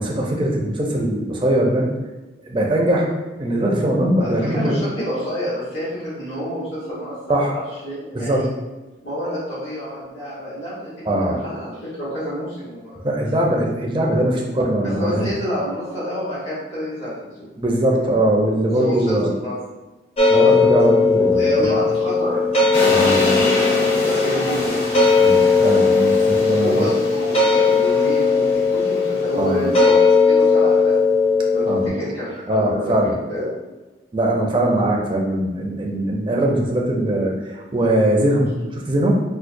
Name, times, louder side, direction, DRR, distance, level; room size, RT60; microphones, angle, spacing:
voice 1, 0.0-1.9 2.5-3.1 3.4-4.8 7.3-7.5 8.1-8.5 11.0-11.4 13.0-15.3 17.6-19.3 20.3-21.7 22.9-23.4 25.2-26.9 29.4-29.7 31.7-32.0 32.5-33.1 34.1-39.1, right 1 dB, 25° right, -1 dB, 0.4 m, -21 dB
voice 2, 4.2-7.5 7.8-8.5 9.0-13.0 15.0-17.4 18.8-19.2 19.4-19.5 21.3-22.4 23.1-24.8 26.6-30.9 31.5-33.4, equal, 80° left, -11 dB, 1.3 m, -28 dB
sound 1, 20.2-31.9, left 4 dB, 30° left, 0.6 m, -17 dB
sound 2, 22.7-29.8, left 1 dB, 60° left, 1.3 m, -28 dB
4.4 x 2.2 x 2.5 m, 1.1 s
head